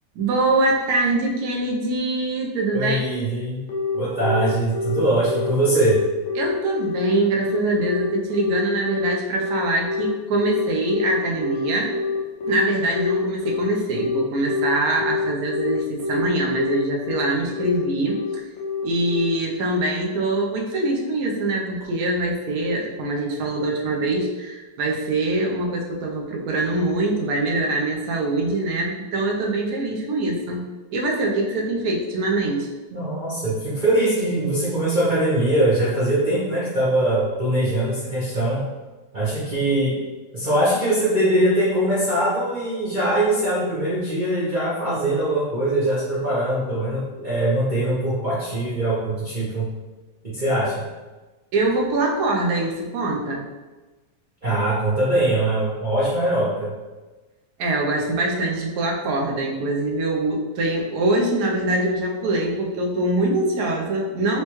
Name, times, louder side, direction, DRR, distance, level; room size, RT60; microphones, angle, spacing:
voice 1, 0.1-3.0 6.3-11.9 12.5-18.2 18.8-30.6 30.9-32.7 51.5-53.4 57.6-64.4, right 2 dB, 65° right, -1 dB, 1.0 m, -23 dB
voice 2, 2.7-3.6 3.9-6.0 32.9-38.6 39.1-40.0 40.3-49.7 50.2-50.9 54.4-56.7, right 1 dB, 50° right, -10 dB, 0.5 m, -22 dB
Telephone, 3.7-19.9, left 5 dB, 80° left, 1.4 m, -26 dB
4.4 x 2.2 x 3.0 m, 1.2 s
omnidirectional pair, 1.9 m